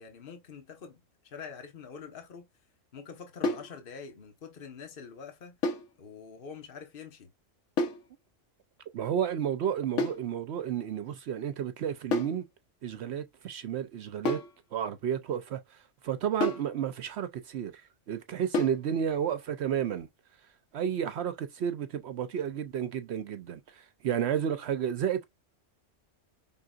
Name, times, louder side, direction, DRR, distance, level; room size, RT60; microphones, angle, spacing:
voice 1, 0.0-2.5 2.9-5.6 6.0-7.3, left 6 dB, 50° left, 1.3 m, -45 dB
sound 1, 3.4-3.7 5.6-5.9 7.8-8.1 10.0-10.3 12.1-12.4 14.3-14.6 16.4-16.7 18.5-18.8, left 2 dB, 75° left, 1.2 m, -30 dB
voice 2, 8.9-12.4 12.8-14.4 14.7-20.1 20.7-25.3, right 9 dB, 65° right, 0.8 m, -32 dB
5.5 x 3.8 x 2.3 m
omnidirectional pair, 1.3 m